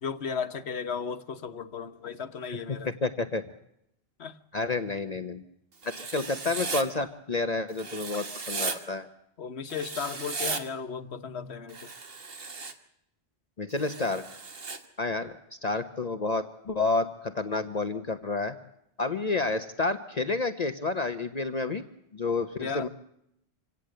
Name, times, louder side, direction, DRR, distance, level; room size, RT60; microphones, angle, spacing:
voice 1, 0.0-2.9 4.2-4.4 9.4-11.9 22.6-22.9, left 6 dB, 85° left, 1.3 m, -35 dB
voice 2, 2.7-3.4 4.5-5.4 5.8-9.1 13.6-14.2 15.0-15.4 15.6-18.5 19.0-21.8 22.1-22.9, left 3 dB, 40° left, 1.0 m, -30 dB
Writing, 5.8-6.8 7.8-8.8 9.7-10.6 11.7-12.7 13.8-14.8, right 4 dB, 65° right, 1.8 m, -36 dB
26.0 x 17.5 x 7.9 m
omnidirectional pair, 1.1 m